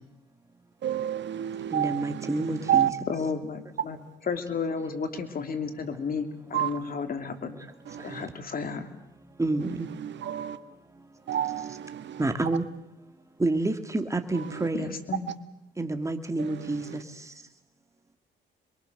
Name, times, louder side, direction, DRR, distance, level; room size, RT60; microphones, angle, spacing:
voice 1, 0.8-2.9 6.5-6.7 7.9-8.3 9.6-10.6 11.3-12.3 14.3-14.7 16.4-17.0, right 11 dB, 65° right, 1.6 m, -30 dB
voice 2, 1.7-3.0 4.8-5.0 9.4-9.9 12.2-12.7 13.4-14.9 15.8-17.3, right 2 dB, 15° right, 2.3 m, -29 dB
voice 3, 3.1-4.0 4.2-7.6 8.0-8.9 14.7-15.3, left 5 dB, 45° left, 3.1 m, -32 dB
27.0 x 22.5 x 6.7 m
cardioid pair, 90°, 20 cm